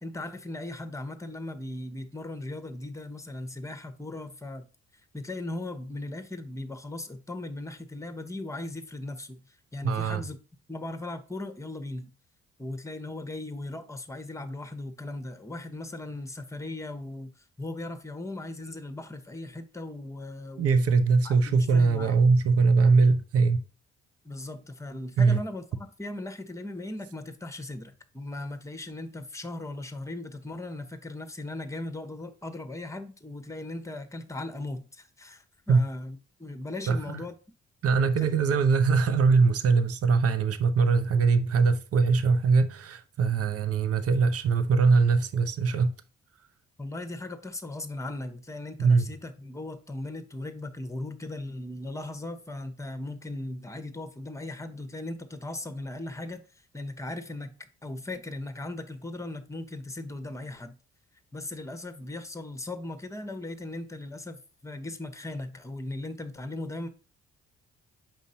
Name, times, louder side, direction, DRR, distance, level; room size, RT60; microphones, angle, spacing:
voice 1, 0.0-4.7 5.1-10.4 10.7-12.1 12.6-21.0 21.2-22.2 24.2-37.3 38.2-38.4 46.8-56.4 56.7-60.7 61.3-66.9, left 2 dB, 10° left, 1.1 m, -38 dB
voice 2, 9.8-10.2 20.6-23.6 25.2-25.4 35.7-35.8 36.9-37.2 37.8-45.9 48.8-49.1, right 4 dB, 45° right, 0.8 m, -22 dB
7.4 x 5.2 x 2.7 m
hypercardioid pair, 45°, 33 cm